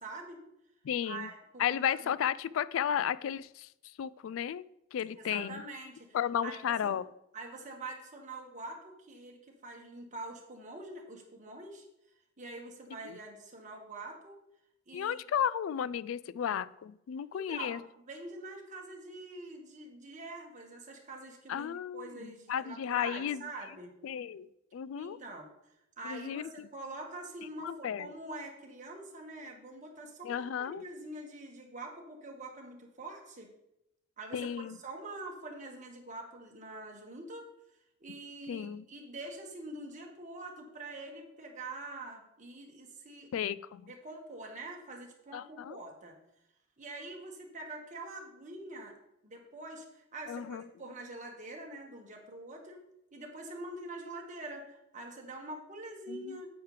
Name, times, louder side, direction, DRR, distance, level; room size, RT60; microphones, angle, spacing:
voice 1, 0.0-0.4 1.1-2.1 5.2-6.1 6.4-6.9 7.3-11.8 12.4-14.4 14.9-15.2 17.3-23.9 24.9-25.5 26.0-33.5 34.2-37.5 38.0-43.3 43.9-46.1 46.8-48.9 49.2-52.8 53.1-56.5, right 2 dB, 40° right, 1 dB, 1.6 m, -45 dB
voice 2, 0.8-1.3 1.6-4.6 4.9-5.6 6.1-7.0 13.0-13.2 14.9-17.8 21.5-23.5 24.0-25.2 26.0-26.7 27.6-28.1 30.2-30.8 34.3-34.8 38.5-38.8 43.3-43.9 45.3-45.8 50.3-50.7 56.1-56.4, left 9 dB, 80° left, 18 dB, 0.3 m, -34 dB
9.3 x 8.2 x 3.3 m, 0.83 s
head